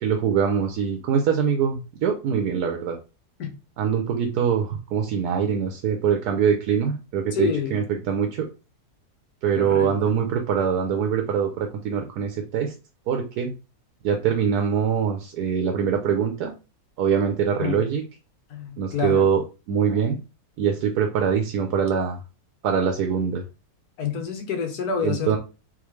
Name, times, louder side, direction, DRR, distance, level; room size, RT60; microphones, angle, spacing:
voice 1, 0.0-3.0 3.8-8.5 9.4-12.7 13.1-13.5 14.0-16.5 17.0-18.0 18.8-19.4 19.7-20.2 20.6-22.2 22.6-23.4 25.0-25.4, right 7 dB, 75° right, 1.2 m, -23 dB
voice 2, 7.3-7.8 9.5-10.2 17.6-17.8 18.5-19.3 24.0-25.4, left 6 dB, 70° left, 1.5 m, -28 dB
3.9 x 3.6 x 3.2 m
omnidirectional pair, 1.8 m